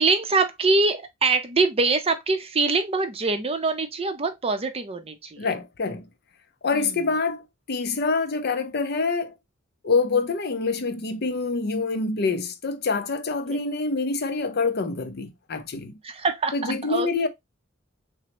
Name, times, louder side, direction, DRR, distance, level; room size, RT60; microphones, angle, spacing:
voice 1, 0.0-5.5 6.7-7.0 13.5-13.6 16.0-17.3, right 3 dB, 30° right, 0.6 m, -24 dB
voice 2, 5.4-6.0 6.6-9.4 9.8-15.9 16.5-17.3, left 4 dB, 55° left, 0.6 m, -26 dB
6.1 x 2.1 x 2.8 m
head